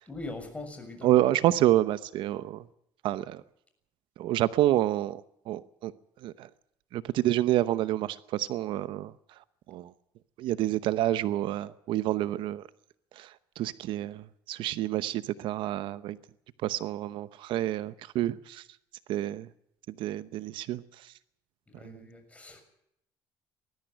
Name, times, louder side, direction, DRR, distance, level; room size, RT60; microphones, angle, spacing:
voice 1, 0.1-1.2 21.7-22.6, left 2 dB, 15° left, 6.6 m, -41 dB
voice 2, 1.0-2.6 3.0-3.4 4.2-5.9 6.2-6.5 6.9-9.1 9.7-9.9 10.4-12.6 13.2-13.3 13.6-14.2 14.5-16.2 16.6-18.6 19.1-19.5 20.0-20.8 21.8-22.0, right 13 dB, 70° right, 0.9 m, -28 dB
20.5 x 14.0 x 9.1 m
cardioid pair, 110°, 9 cm